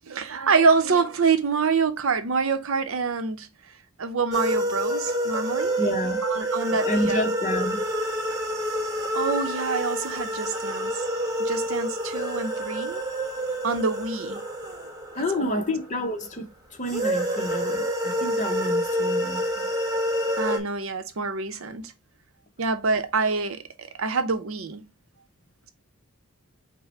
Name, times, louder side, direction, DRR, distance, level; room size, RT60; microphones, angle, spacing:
voice 1, 0.1-3.5 4.0-5.8 6.2-7.3 9.1-11.0 11.4-13.0 13.6-14.4 15.4-15.6 20.4-21.9 22.6-24.8, right 4 dB, 65° right, 0.7 m, -26 dB
sound 1, 4.3-16.1 16.8-20.6, equal, 15° right, 1.1 m, -28 dB
voice 2, 5.8-6.2 6.8-7.8 15.2-19.7, left 1 dB, 35° left, 0.8 m, -29 dB
5.7 x 2.1 x 4.2 m
head